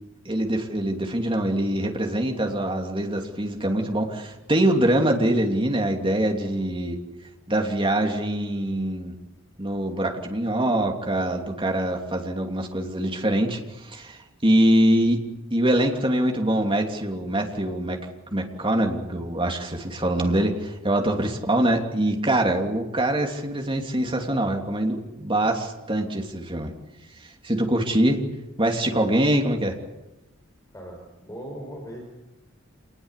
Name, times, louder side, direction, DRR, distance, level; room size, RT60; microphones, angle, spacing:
voice 1, 0.2-7.0 7.5-9.1 9.6-15.2 15.5-18.0 18.3-26.7 27.2-28.2 28.6-29.8, right 1 dB, 25° right, 2 dB, 3.0 m, -24 dB
voice 2, 6.4-6.7 21.0-21.3 30.7-32.0, equal, 15° left, 0 dB, 4.9 m, -39 dB
27.5 x 20.5 x 8.3 m, 0.99 s
head